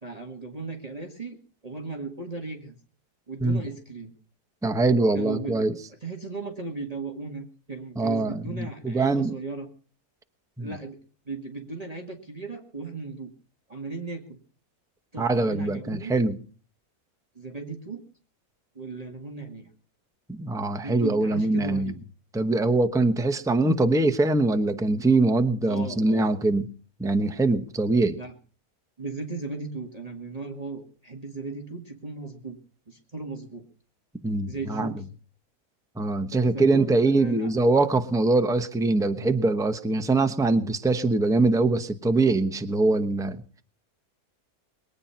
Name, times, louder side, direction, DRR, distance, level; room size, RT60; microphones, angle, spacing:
voice 1, 0.0-2.8 3.3-4.1 5.1-5.7 6.0-9.7 10.6-11.0 11.3-13.3 13.7-14.4 15.1-16.1 17.3-18.0 18.7-19.7 20.8-22.0 25.7-26.3 28.1-28.3 29.0-32.6 32.9-33.6 34.5-34.9 36.3-37.5, right 3 dB, 25° right, 2 dB, 1.7 m, -36 dB
voice 2, 4.6-5.7 8.0-9.3 10.6-10.7 15.2-16.4 20.3-21.9 22.3-26.7 27.0-28.2 34.2-34.9 36.0-43.4, right 2 dB, 5° right, 8 dB, 0.7 m, -23 dB
22.0 x 9.1 x 5.7 m, 0.41 s
omnidirectional pair, 1.6 m